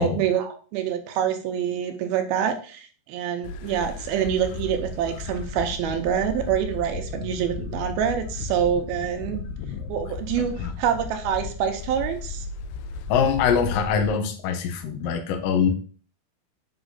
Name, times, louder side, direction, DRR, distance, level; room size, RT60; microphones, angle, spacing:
voice 1, 0.0-9.4 9.9-12.5, right 9 dB, 80° right, 6 dB, 2.5 m, -26 dB
sound 1, 3.4-14.1, left 5 dB, 85° left, 1.9 m, -35 dB
voice 2, 10.4-10.7 13.1-15.7, left 6 dB, 70° left, 5 dB, 2.4 m, -23 dB
8.0 x 3.7 x 4.0 m, 0.40 s
omnidirectional pair, 4.5 m